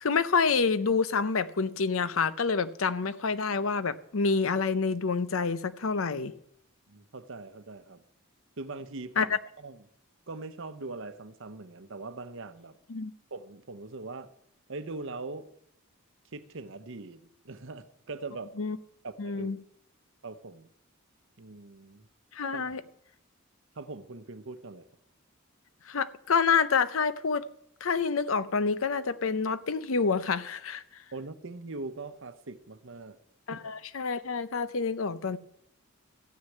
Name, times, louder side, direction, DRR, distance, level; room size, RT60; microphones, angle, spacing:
voice 1, 0.0-6.3 9.2-9.4 12.9-13.1 18.6-18.8 19.2-19.6 22.3-22.8 25.9-27.4 27.8-30.8 33.5-35.4, left 5 dB, 65° left, 0.7 m, -27 dB
voice 2, 6.9-8.0 8.6-9.8 10.3-12.8 13.3-14.3 14.7-15.5 16.3-18.5 19.0-19.5 20.2-20.7 21.4-22.1 22.5-22.8 23.8-24.9 31.1-33.2 33.5-33.6, right 3 dB, 60° right, 0.9 m, -41 dB
14.0 x 6.4 x 8.4 m
head